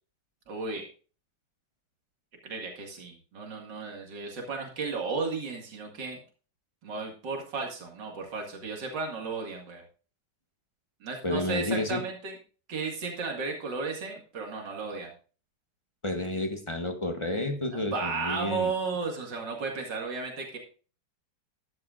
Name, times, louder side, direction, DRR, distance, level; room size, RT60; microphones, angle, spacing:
voice 1, 0.5-0.9 2.4-6.2 6.8-9.8 11.0-12.4 12.7-15.1 17.7-20.6, right 4 dB, 80° right, 1 dB, 2.7 m, -34 dB
voice 2, 11.2-12.0 16.0-18.7, left 2 dB, 20° left, 5 dB, 1.1 m, -30 dB
13.5 x 11.0 x 2.5 m, 0.38 s
omnidirectional pair, 1.9 m